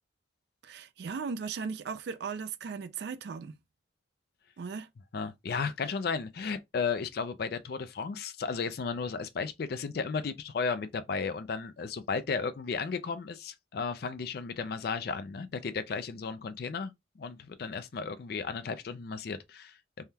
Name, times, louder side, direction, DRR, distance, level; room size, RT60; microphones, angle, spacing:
voice 1, 0.6-3.6 4.6-4.9, right 5 dB, 60° right, 0.3 m, -37 dB
voice 2, 5.1-20.0, left 5 dB, 55° left, 0.4 m, -34 dB
3.4 x 2.2 x 2.7 m
head